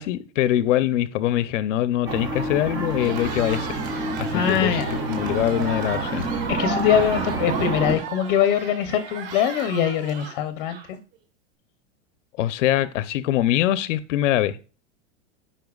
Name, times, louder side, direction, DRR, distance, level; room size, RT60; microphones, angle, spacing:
voice 1, 0.0-4.8 5.1-6.3 12.4-14.6, left 12 dB, 80° left, 0.7 m, -23 dB
sound 1, 2.1-8.0, right 2 dB, 10° right, 0.4 m, -28 dB
Cheering, 2.9-11.1, right 6 dB, 45° right, 2.2 m, -37 dB
voice 2, 4.3-5.0 6.5-11.0, left 9 dB, 35° left, 0.7 m, -23 dB
14.5 x 5.6 x 2.4 m
supercardioid pair, 180°, 37 cm